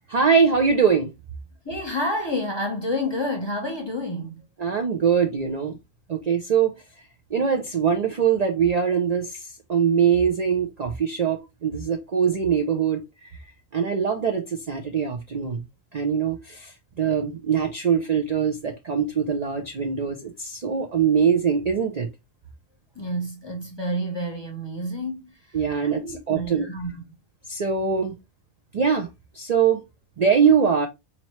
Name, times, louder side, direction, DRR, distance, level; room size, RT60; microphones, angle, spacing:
voice 1, 0.1-1.1 4.6-5.8 6.1-6.7 7.3-9.4 9.7-13.0 13.7-15.6 15.9-22.1 25.5-26.7 27.5-28.2 28.7-29.1 29.3-29.8 30.2-30.9, right 7 dB, 55° right, 0.4 m, -22 dB
voice 2, 1.6-4.4 22.9-25.6 26.0-27.1, left 1 dB, 25° left, 0.8 m, -29 dB
4.2 x 3.0 x 2.9 m
omnidirectional pair, 1.4 m